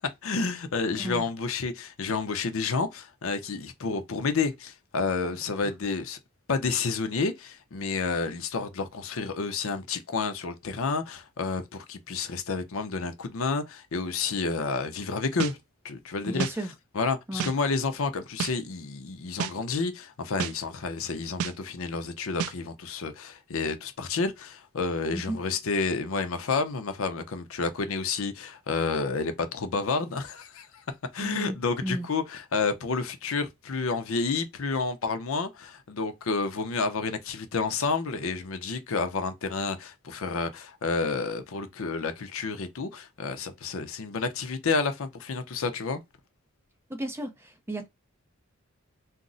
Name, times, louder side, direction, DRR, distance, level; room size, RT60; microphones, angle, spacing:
voice 1, 0.2-6.2 6.5-15.6 15.8-16.5 16.9-30.8 31.1-46.0, left 4 dB, 65° left, 0.6 m, -30 dB
sound 1, 15.4-15.5 16.4-16.5 17.4-17.5 18.4-18.5 19.4-19.5 20.4-20.5 21.4-21.5 22.4-22.5, right 8 dB, 70° right, 0.3 m, -30 dB
voice 2, 16.3-16.7 17.3-17.5 25.1-25.4 31.2-31.6 31.8-32.1 46.9-47.9, right 1 dB, 10° right, 0.5 m, -33 dB
2.4 x 2.0 x 3.8 m
head